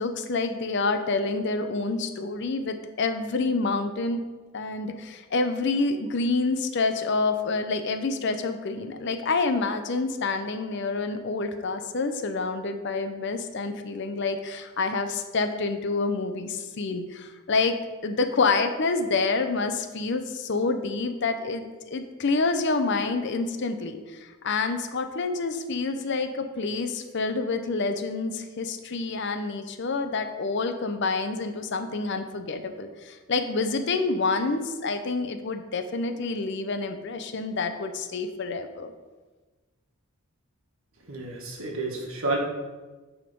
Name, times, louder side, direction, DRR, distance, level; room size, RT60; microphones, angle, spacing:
voice 1, 0.0-4.2 4.5-17.7 18.0-38.9, left 3 dB, 55° left, 8 dB, 0.6 m, -28 dB
voice 2, 41.0-42.4, right 2 dB, 65° right, 0 dB, 1.4 m, -30 dB
9.6 x 3.6 x 5.3 m, 1.3 s
head